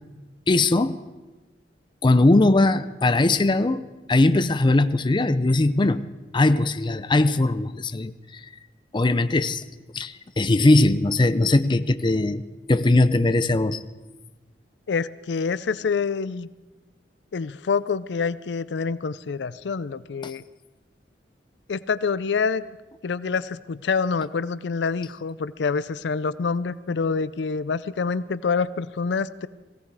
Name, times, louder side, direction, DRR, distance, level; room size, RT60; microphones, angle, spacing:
voice 1, 0.5-1.0 2.0-6.1 6.3-8.1 8.9-9.6 9.9-12.4 12.7-13.8 20.2-20.3, left 2 dB, 25° left, 11 dB, 0.5 m, -20 dB
voice 2, 14.9-16.5 17.3-20.4 21.7-22.6 23.0-29.5, left 5 dB, 80° left, 16 dB, 0.5 m, -26 dB
18.5 x 16.5 x 4.8 m, 1.2 s
head